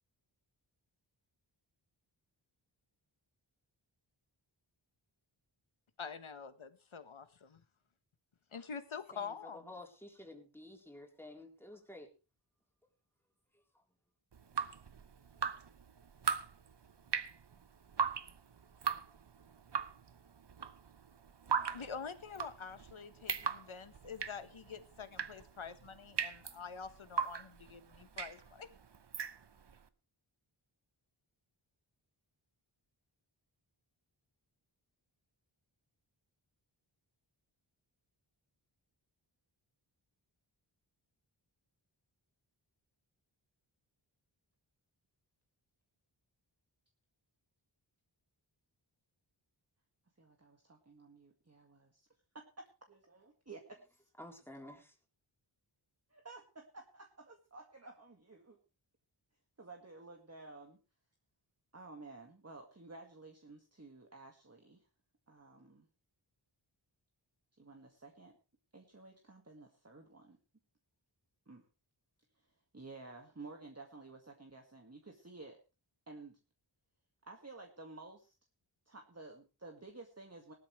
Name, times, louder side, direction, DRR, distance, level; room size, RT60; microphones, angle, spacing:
voice 1, 6.0-7.6 8.5-9.7 21.6-28.7, left 6 dB, 80° left, 11 dB, 1.4 m, -46 dB
voice 2, 9.1-12.1 54.2-55.0, left 1 dB, 5° left, 1 dB, 3.8 m, -51 dB
Drip, 14.3-29.8, right 6 dB, 60° right, 1.0 m, -39 dB
voice 3, 50.2-52.1 52.3-54.1 56.1-58.6 59.6-60.8 61.7-64.9 65.3-65.9 67.6-68.4 68.7-70.4 71.5-71.7 72.4-75.6 76.1-76.4 77.2-78.3 78.9-80.5, right 3 dB, 30° right, 3 dB, 1.9 m, -53 dB
18.5 x 12.5 x 3.3 m, 0.31 s
wide cardioid pair, 75°, 47 cm